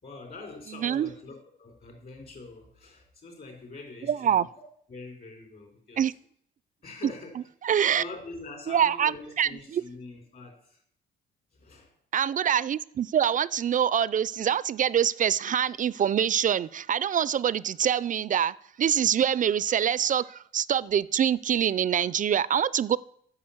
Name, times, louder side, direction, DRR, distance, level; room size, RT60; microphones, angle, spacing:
voice 1, 0.0-4.5 4.9-6.0 6.8-7.4 7.9-10.8 11.5-11.9, left 3 dB, 50° left, 4.2 m, -44 dB
voice 2, 0.8-1.1 4.1-4.5 6.0-6.1 7.6-8.0 8.7-9.8 12.1-23.0, right 9 dB, 40° right, 0.4 m, -25 dB
9.6 x 6.6 x 7.2 m
cardioid pair, 90°, 20 cm